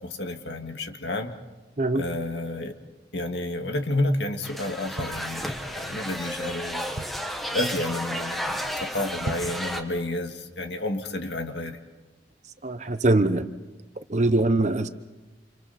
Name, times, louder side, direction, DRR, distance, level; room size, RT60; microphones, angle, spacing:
voice 1, 0.0-1.3 1.9-2.7 3.1-7.0 7.5-11.8, left 2 dB, 65° left, 5 dB, 2.0 m, -30 dB
sound 1, 4.4-9.8, equal, ahead, 1.4 m, -32 dB
sound 2, 4.9-5.9 6.4-6.5 6.7-7.4 7.9-8.2 8.4-8.5 9.1-9.7 10.1-10.2, right 2 dB, 75° right, 1.1 m, -37 dB
voice 2, 12.6-13.5 14.1-14.9, right 2 dB, 40° right, 10 dB, 0.9 m, -22 dB
30.0 x 28.0 x 4.2 m, 1.1 s
head